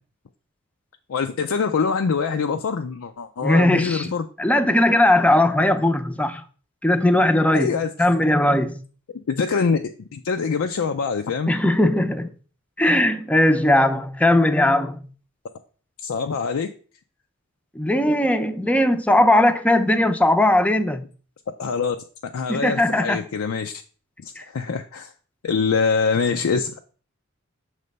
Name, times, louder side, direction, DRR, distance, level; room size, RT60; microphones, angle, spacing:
voice 1, 1.1-4.3 7.5-7.9 9.3-9.8 10.1-11.5 16.0-16.7 21.6-22.0 22.2-23.8 24.2-25.1 25.4-26.8, left 5 dB, 90° left, 0.4 m, -24 dB
voice 2, 3.4-6.4 6.8-7.7 8.0-8.8 11.5-12.3 12.8-15.0 17.8-21.0 22.5-23.3, left 1 dB, 5° left, 0.5 m, -19 dB
6.6 x 3.3 x 5.2 m
head